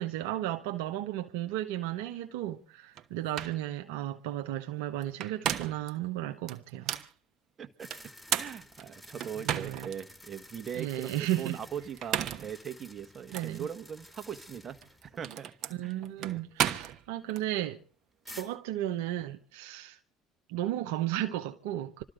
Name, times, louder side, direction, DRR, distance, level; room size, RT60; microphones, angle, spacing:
voice 1, 0.0-7.0 9.4-9.9 10.7-11.6 13.3-13.7 15.7-17.8 18.3-20.0 20.5-22.0, right 13 dB, 80° right, 1.0 m, -34 dB
sound 1, 3.0-3.1 3.4-3.6 5.0-5.9 6.5-7.1 7.9-10.0 10.5-10.6 11.8-12.5 13.3-13.5 14.7-17.4, right 10 dB, 60° right, 1.2 m, -34 dB
voice 2, 7.6-7.9 8.4-11.1 11.4-15.5 15.8-16.4, right 8 dB, 40° right, 1.6 m, -40 dB
sound 2, 7.8-15.3 15.6-15.7 18.3-18.4, left 1 dB, 10° left, 4.6 m, -52 dB
26.5 x 13.5 x 3.9 m
hypercardioid pair, 70°, 0 cm